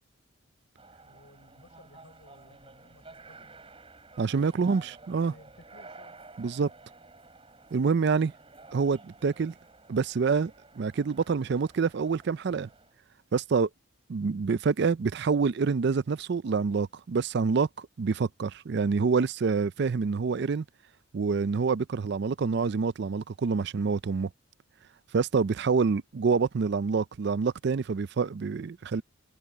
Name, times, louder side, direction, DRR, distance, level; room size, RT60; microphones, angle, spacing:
sound 1, 0.8-13.0, right 3 dB, 25° right, 5.4 m, -52 dB
voice 1, 1.0-3.7 4.6-5.0 5.3-6.2 6.8-6.9, left 1 dB, 65° left, 6.2 m, -57 dB
voice 2, 4.2-5.3 6.4-6.7 7.7-8.3 8.7-9.5 9.9-12.7 13.3-13.7 14.1-20.6 21.1-24.3 25.1-29.0, right 5 dB, 55° right, 0.4 m, -27 dB
head